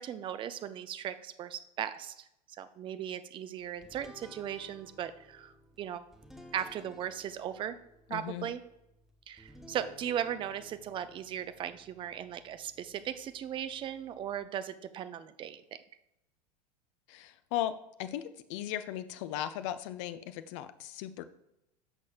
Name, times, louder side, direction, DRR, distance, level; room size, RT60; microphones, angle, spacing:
voice 1, 0.0-2.3 2.6-6.0 6.5-7.8 8.1-8.6 9.3-15.8, right 10 dB, 25° right, 13 dB, 0.5 m, -38 dB
sound 1, 3.8-14.5, equal, ahead, 0.9 m, -57 dB
voice 2, 8.1-8.5 17.1-21.3, left 12 dB, 45° left, 12 dB, 0.5 m, -37 dB
11.0 x 6.3 x 2.4 m, 0.86 s
figure-of-eight pair, 85°, 21 cm